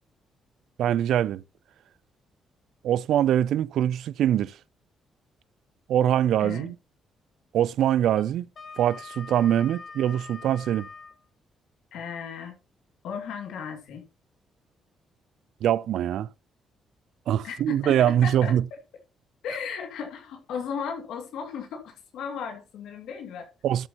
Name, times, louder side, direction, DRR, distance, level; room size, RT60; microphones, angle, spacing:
voice 1, 0.8-1.4 2.8-4.6 5.9-6.7 7.5-8.5 8.8-10.9 15.6-16.3 17.3-18.6 23.6-23.9, right 11 dB, 75° right, 0.4 m, -23 dB
voice 2, 6.4-6.7 11.9-12.5 13.0-14.0 17.4-18.8 19.4-23.5, left 6 dB, 80° left, 2.3 m, -36 dB
Wind instrument woodwind instrument, 8.1-11.2, left 4 dB, 50° left, 2.2 m, -43 dB
13.0 x 8.0 x 2.9 m
cardioid pair, 90°, 0 cm